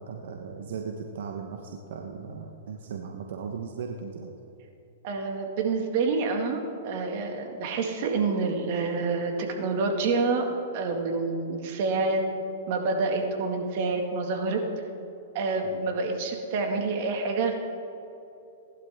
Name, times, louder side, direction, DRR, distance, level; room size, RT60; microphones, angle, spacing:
voice 1, 0.1-4.3, right 5 dB, 75° right, 3 dB, 1.1 m, -37 dB
voice 2, 5.0-12.2 12.7-14.6 15.3-17.5, right 4 dB, 50° right, 3 dB, 2.0 m, -27 dB
19.0 x 11.5 x 3.6 m, 2.9 s
hypercardioid pair, 135°, 0 cm